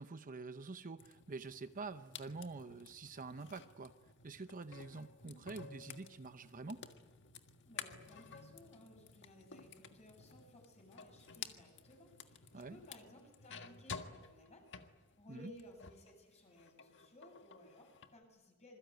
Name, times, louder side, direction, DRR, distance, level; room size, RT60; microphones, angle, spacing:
voice 1, 0.0-3.9 4.2-6.8 12.5-12.8 15.3-15.5, right 3 dB, 40° right, 10 dB, 0.8 m, -47 dB
sound 1, 1.0-16.1 16.5-18.1, left 6 dB, 60° left, 1.6 m, -53 dB
voice 2, 7.6-14.7 15.2-18.8, left 1 dB, 30° left, 3 dB, 7.6 m, -59 dB
27.0 x 22.0 x 9.3 m, 1.2 s
head